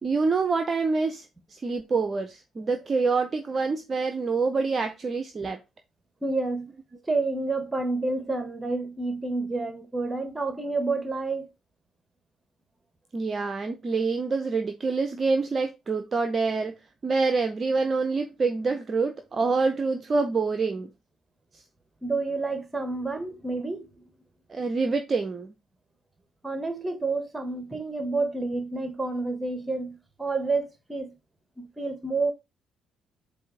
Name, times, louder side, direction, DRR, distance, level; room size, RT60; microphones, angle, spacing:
voice 1, 0.0-5.6 13.1-16.7 17.0-20.9 21.5-21.6 24.5-25.5, right 4 dB, 35° right, 0.7 m, -26 dB
voice 2, 6.2-6.7 7.1-11.5 22.0-24.0 26.4-31.2 31.6-32.3, right 3 dB, 20° right, 1.5 m, -29 dB
7.7 x 2.7 x 4.9 m
figure-of-eight pair, 45°, 0 cm